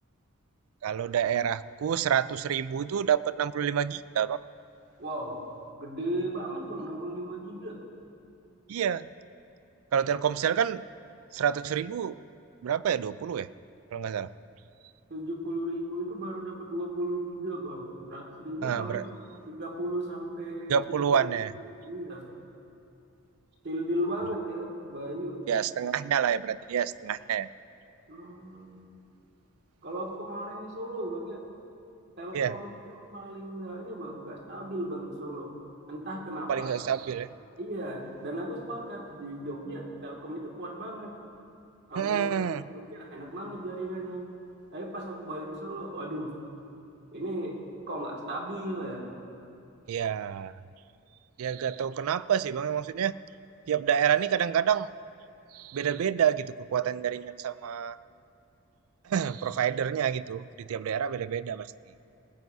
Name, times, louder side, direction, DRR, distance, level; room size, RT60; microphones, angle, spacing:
voice 1, 0.8-4.4 8.7-9.1 9.9-10.8 11.3-12.2 12.6-13.5 13.9-14.3 18.6-19.1 20.7-21.5 25.5-27.5 32.3-32.6 36.5-37.3 42.0-42.6 49.9-50.6 51.4-53.1 53.7-54.9 55.5-58.0 59.1-61.7, right 8 dB, 85° right, 16 dB, 0.4 m, -28 dB
voice 2, 5.0-5.4 5.8-7.8 15.1-19.0 19.5-21.5 21.8-22.3 23.6-25.4 28.1-28.9 29.8-31.4 32.2-35.6 35.9-36.8 37.6-41.1 41.9-44.3 44.7-46.3 47.1-47.6 47.9-49.1, right 1 dB, 55° right, -1 dB, 2.1 m, -36 dB
19.0 x 16.0 x 2.7 m, 2.7 s
head